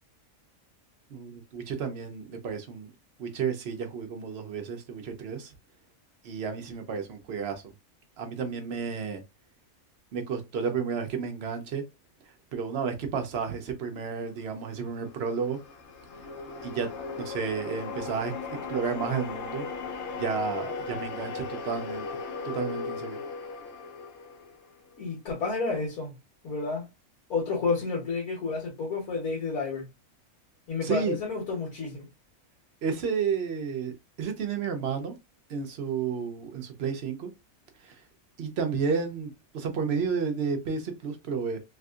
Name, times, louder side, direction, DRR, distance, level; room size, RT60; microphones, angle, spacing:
voice 1, 1.1-2.9 3.2-5.5 6.2-7.7 8.2-9.2 10.1-11.8 12.5-15.6 16.6-18.4 18.7-19.7 20.1-22.1 22.4-23.2 30.8-31.1 32.8-35.1 35.5-37.3 37.8-38.0 38.4-41.6, right 6 dB, 55° right, 0.8 m, -31 dB
sound 1, 14.7-25.0, left 4 dB, 60° left, 0.8 m, -37 dB
voice 2, 25.0-26.1 26.4-26.9 27.3-29.9 30.7-32.1, left 4 dB, 75° left, 1.8 m, -30 dB
3.5 x 2.6 x 2.3 m
omnidirectional pair, 1.5 m